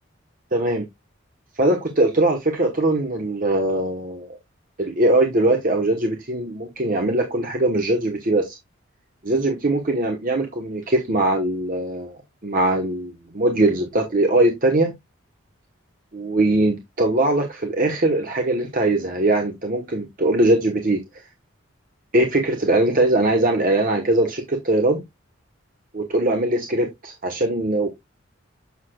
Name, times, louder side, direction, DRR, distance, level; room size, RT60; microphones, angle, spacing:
voice 1, 0.5-0.8 1.5-4.4 4.8-8.6 9.2-12.2 12.4-14.9 16.1-21.0 22.1-25.0 25.9-27.9, right 2 dB, 45° right, 1.1 m, -21 dB
8.2 x 6.4 x 2.3 m
head